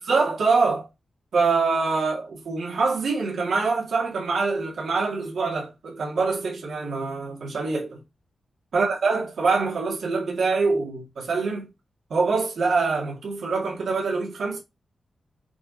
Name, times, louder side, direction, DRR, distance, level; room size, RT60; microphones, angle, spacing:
voice 1, 0.0-0.9 1.3-8.0 8.7-11.7 12.1-14.6, right 4 dB, 70° right, 2.3 m, -24 dB
6.9 x 3.5 x 5.1 m
wide cardioid pair, 165°, 0 cm